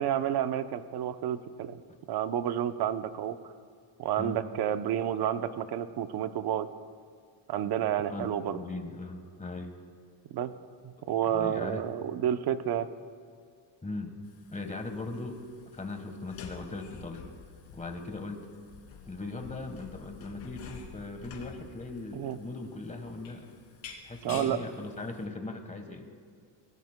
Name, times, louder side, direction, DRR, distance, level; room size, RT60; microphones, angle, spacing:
voice 1, 0.0-1.8 2.1-3.4 4.0-6.7 7.5-8.6 10.3-10.5 10.8-12.9 22.1-22.4 24.2-24.7, right 10 dB, 50° right, 10 dB, 0.7 m, -30 dB
voice 2, 8.1-9.7 11.2-11.8 13.8-14.2 14.5-15.4 15.7-17.2 17.7-18.5 19.1-23.6 24.0-26.1, left 3 dB, 15° left, 5 dB, 1.3 m, -39 dB
sound 1, 14.2-25.2, left 6 dB, 70° left, 2.6 m, -50 dB
24.5 x 18.5 x 2.2 m, 2.2 s
cardioid pair, 135°, 50 cm